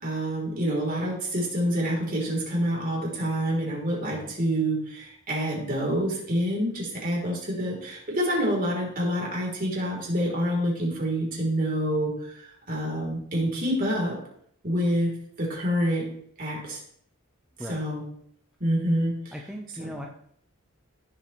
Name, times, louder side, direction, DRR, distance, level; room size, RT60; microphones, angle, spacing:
voice 1, 0.0-14.2 14.6-15.1 15.4-16.1 16.4-16.8 17.7-18.0 18.6-19.3 19.8-20.0, equal, 40° right, -2 dB, 3.4 m, -27 dB
voice 2, 19.3-20.1, equal, 5° right, -1 dB, 0.7 m, -38 dB
16.0 x 7.3 x 3.1 m, 0.66 s
head